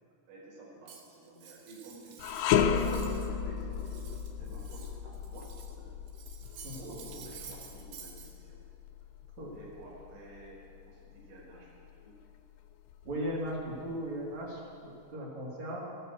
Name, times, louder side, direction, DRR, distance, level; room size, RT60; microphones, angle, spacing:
voice 1, 0.3-3.8 4.4-5.9 6.7-8.6 9.5-11.7 12.0-12.2 13.5-13.8, right 2 dB, 70° right, -4 dB, 6.6 m, -51 dB
Cutlery silverware, 0.9-3.3 3.6-5.8 6.1-8.3, right 7 dB, 85° right, 4.0 m, -51 dB
sound 1, 2.2-11.4 11.9-12.0 12.9-13.8, left 7 dB, 85° left, 2.4 m, -34 dB
voice 2, 13.0-15.8, equal, 40° right, -4 dB, 3.2 m, -37 dB
14.0 x 12.5 x 7.8 m, 2.4 s
omnidirectional pair, 5.7 m